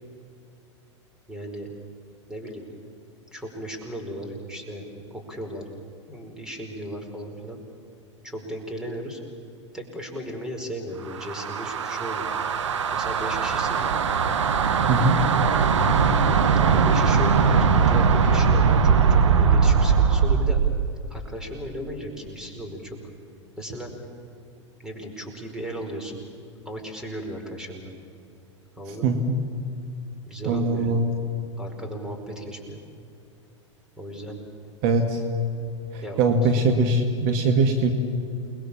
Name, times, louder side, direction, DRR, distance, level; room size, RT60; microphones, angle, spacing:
voice 1, 1.3-1.7 2.3-2.6 3.3-5.7 6.1-7.6 8.2-9.2 9.7-12.3 12.9-13.9 16.6-20.6 21.1-23.0 23.6-23.9 24.8-26.2 26.6-27.9 28.8-29.1 30.2-31.0 31.5-32.8 34.0-34.4 36.0-36.2, equal, 5° right, 2 dB, 5.1 m, -36 dB
sound 1, 11.1-20.8, right 6 dB, 70° right, 1.6 m, -20 dB
voice 2, 14.9-15.2 28.9-29.4 30.5-31.1 34.8-35.2 35.9-37.9, right 2 dB, 50° right, 4 dB, 2.1 m, -22 dB
29.0 x 21.5 x 7.3 m, 2.6 s
figure-of-eight pair, 95°, 16 cm